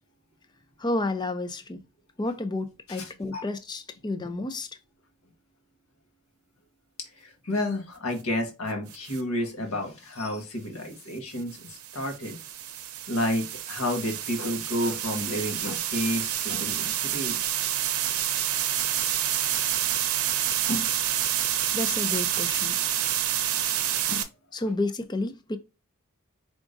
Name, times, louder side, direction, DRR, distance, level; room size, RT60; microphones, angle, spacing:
voice 1, 0.8-1.9 2.2-4.7 21.7-22.8 24.5-25.6, left 2 dB, 20° left, 0.5 m, -31 dB
voice 2, 2.9-3.4 7.2-12.4 13.1-17.4 20.7-20.9 24.1-24.2, left 1 dB, 80° left, 1.5 m, -31 dB
sound 1, 8.9-9.2 11.3-24.2, right 11 dB, 85° right, 0.6 m, -28 dB
4.9 x 3.6 x 2.5 m
head